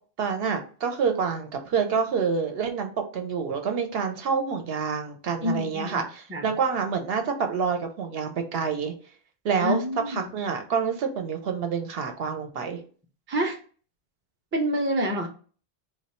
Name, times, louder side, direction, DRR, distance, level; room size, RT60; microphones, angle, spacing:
voice 1, 0.2-8.9 9.4-12.8, right 6 dB, 70° right, 5 dB, 0.8 m, -27 dB
voice 2, 5.4-6.0 6.3-6.5 9.6-10.3 13.3-13.6 14.5-15.3, equal, 15° right, 2 dB, 0.4 m, -27 dB
3.1 x 2.3 x 4.2 m, 0.41 s
omnidirectional pair, 1.1 m